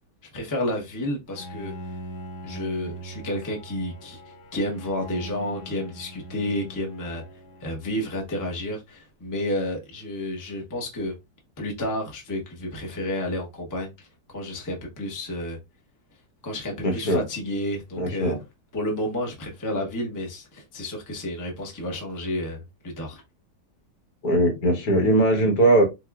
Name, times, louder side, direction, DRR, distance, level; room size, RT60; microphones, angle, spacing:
voice 1, 0.3-1.7 2.4-4.2 4.5-7.2 7.6-11.1 11.6-14.1 14.3-15.6 16.4-18.3 18.7-23.2, left 1 dB, 15° left, 0.6 m, -31 dB
Bowed string instrument, 1.3-8.4, equal, 80° left, 1.3 m, -41 dB
voice 2, 16.8-17.2 18.0-18.4 24.2-25.8, right 1 dB, 65° left, 1.6 m, -20 dB
4.6 x 2.3 x 2.4 m
omnidirectional pair, 1.8 m